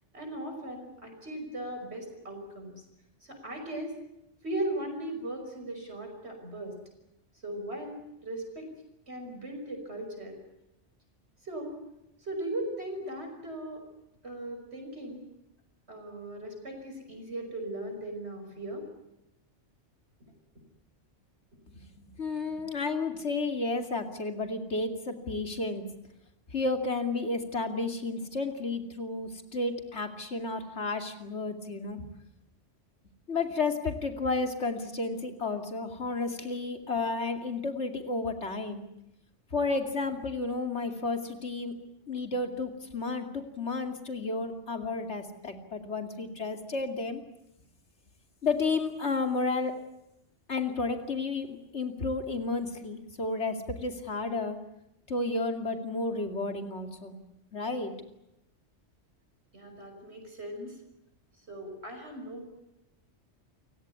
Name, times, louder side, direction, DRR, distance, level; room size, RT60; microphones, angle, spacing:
voice 1, 0.1-2.7 3.2-3.9 4.4-6.7 7.4-8.7 9.1-10.4 11.4-11.7 12.2-13.8 14.2-15.2 15.9-18.8 59.5-60.8 61.5-62.5, right 1 dB, 65° right, 3 dB, 5.9 m, -38 dB
voice 2, 22.0-25.8 26.5-32.1 33.3-38.8 39.5-41.7 42.1-47.2 48.4-49.8 50.5-54.6 55.1-57.2 57.5-57.9, left 3 dB, 70° left, 6 dB, 2.9 m, -32 dB
29.5 x 17.0 x 9.7 m, 0.86 s
omnidirectional pair, 1.2 m